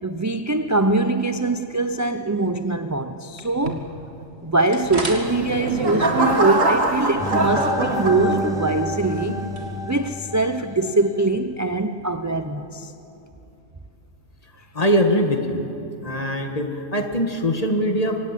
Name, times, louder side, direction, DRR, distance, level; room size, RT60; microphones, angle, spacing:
voice 1, 0.0-3.9 4.4-9.4 9.8-12.9, right 2 dB, 25° right, 8 dB, 0.4 m, -23 dB
sound 1, 3.4-11.3, right 2 dB, 55° right, 2.3 m, -38 dB
sound 2, 5.1-8.7 9.3-9.6, right 2 dB, 80° right, 2.7 m, -23 dB
sound 3, 7.2-11.2, left 1 dB, 5° right, 0.8 m, -29 dB
voice 2, 14.8-15.6 16.0-18.2, equal, 30° left, 5 dB, 1.8 m, -22 dB
25.0 x 18.5 x 8.5 m, 2.9 s
omnidirectional pair, 1.4 m